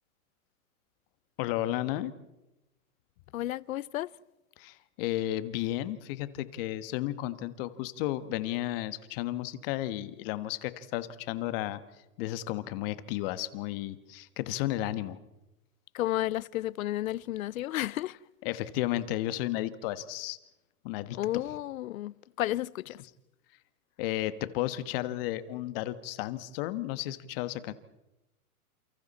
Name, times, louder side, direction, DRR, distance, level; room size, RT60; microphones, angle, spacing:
voice 1, 1.4-2.1 4.6-11.8 12.2-15.2 18.4-20.4 20.8-21.2 24.0-27.7, left 14 dB, 40° left, 1.4 m, -33 dB
voice 2, 3.3-4.2 15.9-18.2 21.1-23.0, left 14 dB, 65° left, 0.7 m, -32 dB
30.0 x 28.5 x 4.2 m
hypercardioid pair, 145°, 44 cm